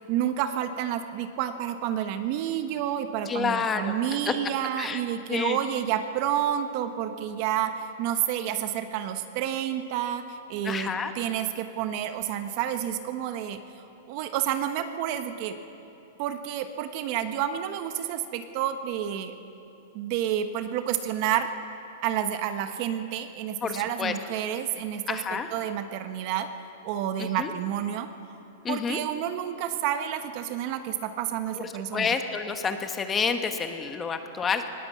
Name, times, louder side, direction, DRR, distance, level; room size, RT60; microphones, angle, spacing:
voice 1, 0.1-13.6 14.1-15.6 16.2-19.3 19.9-21.5 22.0-26.5 26.8-28.1 28.7-32.2, right 10 dB, 40° right, 8 dB, 1.2 m, -29 dB
voice 2, 3.3-3.9 4.2-4.3 4.8-5.0 5.3-5.6 10.6-11.1 23.6-24.1 25.1-25.5 27.2-27.5 28.6-29.0 31.6-34.7, left 5 dB, 15° left, 7 dB, 1.2 m, -29 dB
19.5 x 18.5 x 8.5 m, 2.9 s
supercardioid pair, 155°, 0 cm